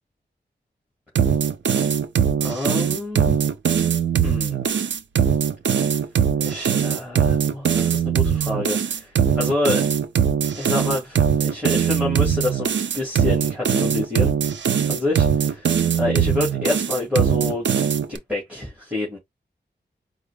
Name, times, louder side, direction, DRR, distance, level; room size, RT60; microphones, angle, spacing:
sound 1, 1.2-18.2, right 8 dB, 90° right, 0.5 m, -21 dB
voice 1, 2.4-3.4 4.2-4.6 6.4-9.8 10.5-14.3 14.9-15.7 15.9-17.7 18.1-19.2, left 2 dB, 5° right, 2.3 m, -27 dB
4.7 x 2.1 x 3.4 m
wide cardioid pair, 110°, 19 cm